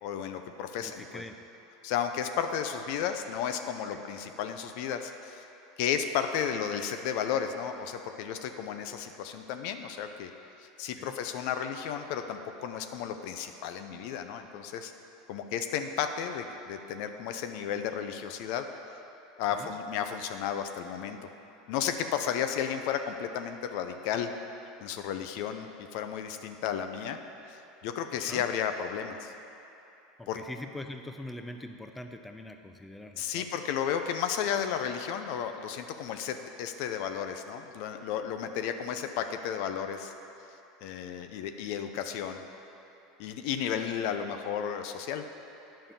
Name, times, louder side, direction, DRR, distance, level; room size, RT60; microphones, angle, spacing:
voice 1, 0.0-1.2 1.8-5.4 5.8-10.3 10.8-14.9 15.3-18.7 19.4-21.2 21.7-24.3 24.8-27.2 27.5-29.3 30.3-30.4 33.2-40.1 40.8-42.4 43.2-45.2, left 8 dB, 65° left, 7 dB, 0.6 m, -33 dB
voice 2, 0.8-1.3 3.9-4.0 11.0-11.1 19.5-19.7 28.1-28.5 30.2-33.5, left 1 dB, 10° left, 6 dB, 0.6 m, -43 dB
8.9 x 5.6 x 6.9 m, 2.9 s
hypercardioid pair, 95°, 0 cm